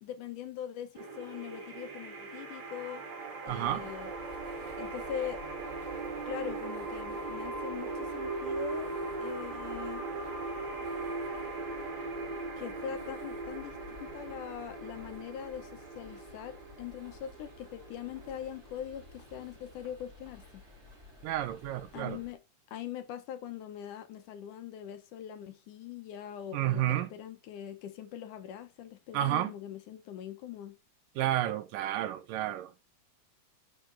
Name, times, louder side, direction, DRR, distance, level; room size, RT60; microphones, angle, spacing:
voice 1, 0.0-3.0 3.4-4.1 4.8-5.4 6.3-8.9 9.2-10.0 12.6-20.6 21.9-22.4 22.7-30.8, left 9 dB, 70° left, 2.4 m, -42 dB
sound 1, 0.9-19.9, right 3 dB, 50° right, 3.1 m, -39 dB
sound 2, 3.5-22.3, left 1 dB, 20° right, 3.7 m, -54 dB
voice 2, 3.5-3.9 21.2-22.2 26.5-27.1 29.1-29.5 31.2-32.8, right 13 dB, 80° right, 2.5 m, -31 dB
11.5 x 5.8 x 4.7 m
omnidirectional pair, 3.9 m